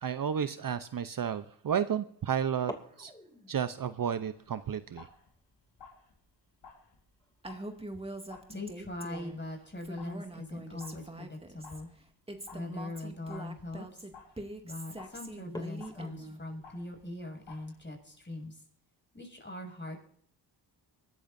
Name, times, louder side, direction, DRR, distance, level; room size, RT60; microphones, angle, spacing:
voice 1, 0.0-2.7 3.0-3.1 3.5-5.1, right 8 dB, 50° right, 12 dB, 0.8 m, -32 dB
sound 1, 2.7-9.0 9.2-9.3 9.7-10.1 11.1-11.3 11.9-12.0 12.5-12.6 13.0-13.3 13.9-14.3 14.7-14.8 15.4-17.7, left 1 dB, 10° left, 2.7 m, -51 dB
sound 2, 4.3-18.2, left 5 dB, 70° left, 4.8 m, -57 dB
Female speech woman speaking, 7.4-9.4 9.8-11.8 12.3-16.4, right 2 dB, 15° right, 2.3 m, -43 dB
voice 2, 8.5-11.9 12.5-14.0 14.6-18.6 19.1-20.0, left 2 dB, 25° left, 3 dB, 7.1 m, -41 dB
23.0 x 13.5 x 2.7 m, 0.64 s
cardioid pair, 60°, 44 cm